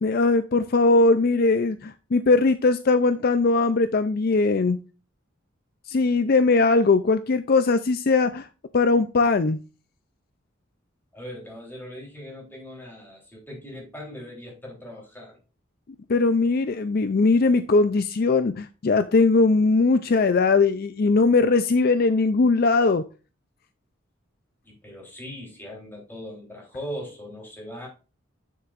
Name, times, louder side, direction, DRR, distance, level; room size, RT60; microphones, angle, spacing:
voice 1, 0.0-4.8 5.9-8.5 8.7-9.6 16.1-23.0, left 3 dB, 50° left, 11 dB, 0.4 m, -20 dB
voice 2, 11.1-15.4 24.6-27.9, equal, 10° left, -1 dB, 3.5 m, -39 dB
9.5 x 6.7 x 2.5 m, 0.33 s
head